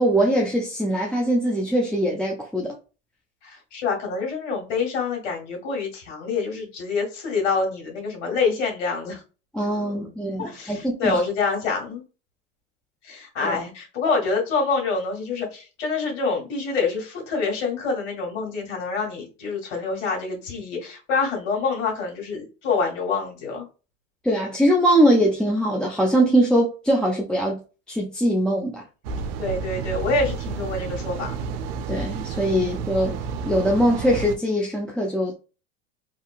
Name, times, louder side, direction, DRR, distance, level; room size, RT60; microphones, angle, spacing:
voice 1, 0.0-2.7 9.5-11.2 13.4-13.6 24.2-27.6 27.9-28.8 31.9-33.2 33.5-35.4, right 1 dB, ahead, 0.5 m, -22 dB
voice 2, 3.4-9.2 10.4-12.0 13.0-23.6 29.4-31.5, left 4 dB, 65° left, 1.7 m, -26 dB
sound 1, 29.0-34.4, right 5 dB, 70° right, 0.6 m, -31 dB
3.0 x 2.7 x 2.4 m
hypercardioid pair, 90°, 38 cm